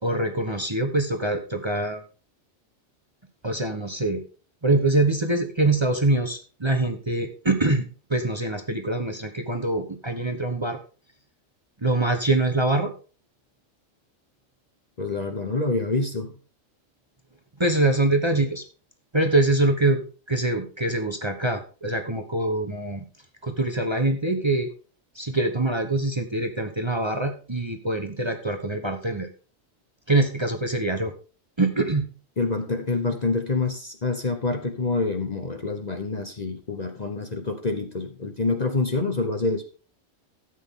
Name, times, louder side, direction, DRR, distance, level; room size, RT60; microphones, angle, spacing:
voice 1, 0.0-2.0 3.4-4.2 4.6-10.8 11.8-12.9 17.6-18.6 19.1-20.0 20.3-23.0 23.4-24.7 25.1-29.3 30.1-31.1 31.6-32.1, right 2 dB, 20° right, 6 dB, 1.1 m, -24 dB
voice 2, 15.0-16.3 32.4-39.6, left 3 dB, 35° left, 6 dB, 1.0 m, -27 dB
13.0 x 8.1 x 3.7 m, 0.37 s
omnidirectional pair, 1.4 m